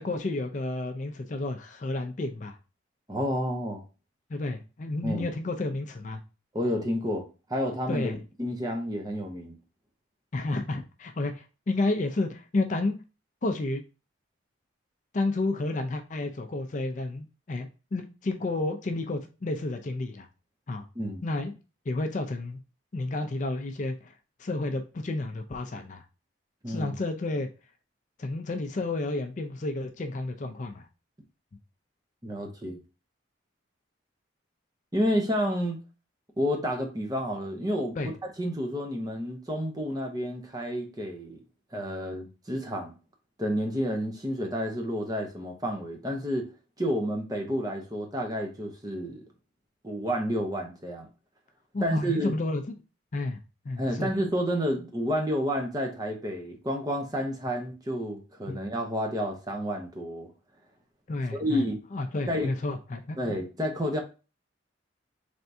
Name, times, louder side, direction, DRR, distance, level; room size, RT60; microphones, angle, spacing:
voice 1, 0.0-2.6 4.3-6.2 7.9-8.2 10.3-13.0 13.4-13.8 15.1-20.3 20.7-20.9 21.2-21.5 21.9-22.6 22.9-24.1 24.4-26.0 26.7-27.5 28.2-30.9 38.0-38.1 51.7-52.6 53.1-53.4 53.7-54.1 58.5-58.6 61.1-61.6 61.9-63.2, left 2 dB, 40° left, 0.4 m, -31 dB
voice 2, 3.1-3.8 5.0-5.3 6.5-8.1 8.4-9.6 21.0-21.2 26.6-26.9 32.2-32.8 34.9-35.8 36.4-41.4 41.7-42.9 43.4-46.5 46.8-49.2 49.8-51.1 51.8-52.4 53.8-60.3 61.3-61.8 62.3-62.5 63.2-64.0, equal, 20° right, 0.7 m, -30 dB
4.4 x 3.4 x 2.6 m
head